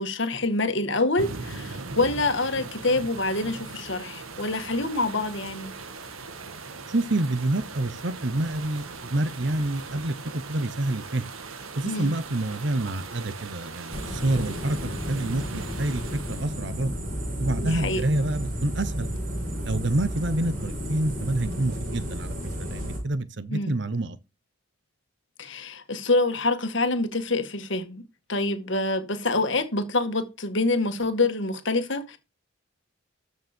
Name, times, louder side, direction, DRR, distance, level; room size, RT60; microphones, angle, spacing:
voice 1, 0.0-5.7 11.9-12.1 17.6-18.0 23.5-23.7 25.4-28.0 28.3-32.2, left 2 dB, 60° left, 1.8 m, -26 dB
sound 1, 1.2-16.7, right 4 dB, 80° right, 1.8 m, -40 dB
voice 2, 6.9-11.2 11.8-16.0 16.3-16.9 17.4-19.1 19.6-24.2, right 2 dB, 55° right, 1.0 m, -28 dB
sound 2, 13.9-23.0, equal, 40° right, 6.3 m, -32 dB
13.5 x 6.8 x 4.5 m
head